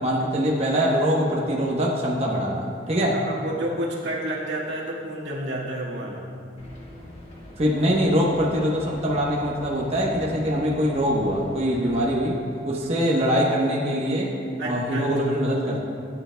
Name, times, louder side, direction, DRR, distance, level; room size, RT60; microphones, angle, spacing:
voice 1, 0.0-3.2 7.6-12.4 12.6-14.3 14.6-15.8, equal, 35° right, -4 dB, 1.0 m, -23 dB
voice 2, 3.3-6.3 11.8-11.9 14.6-15.1, right 1 dB, 80° right, -4 dB, 1.7 m, -30 dB
sound 1, 6.6-12.0, left 1 dB, 35° left, 1.6 m, -43 dB
16.0 x 9.0 x 2.3 m, 2.4 s
head